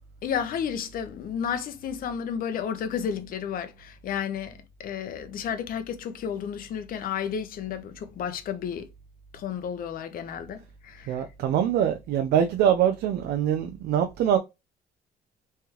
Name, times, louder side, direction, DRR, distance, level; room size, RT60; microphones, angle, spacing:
voice 1, 0.2-8.9 9.3-11.2, left 8 dB, 60° left, 0.8 m, -32 dB
voice 2, 11.1-14.4, right 9 dB, 75° right, 0.6 m, -23 dB
3.5 x 3.3 x 2.9 m
cardioid pair, 110°, 17 cm